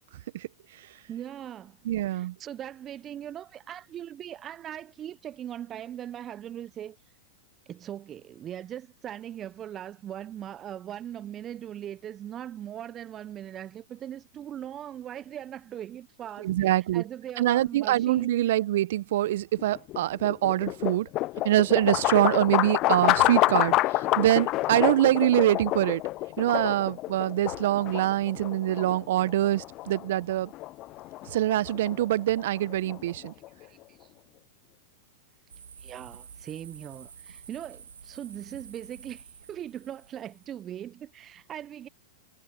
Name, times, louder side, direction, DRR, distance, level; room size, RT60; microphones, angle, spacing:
voice 1, 1.1-1.8 2.1-7.0 7.7-18.3 33.7-34.1 35.8-41.9, right 10 dB, 30° right, 0.7 m, -40 dB
voice 2, 1.8-2.4 16.4-17.0 17.4-21.1 21.4-26.0 26.4-30.5 31.3-33.3, right 14 dB, 60° right, 1.0 m, -24 dB
sound 1, 19.5-33.6, left 18 dB, 40° left, 0.5 m, -28 dB
sound 2, 35.5-40.6, right 7 dB, 80° right, 1.8 m, -49 dB
hypercardioid pair, 105°, 0 cm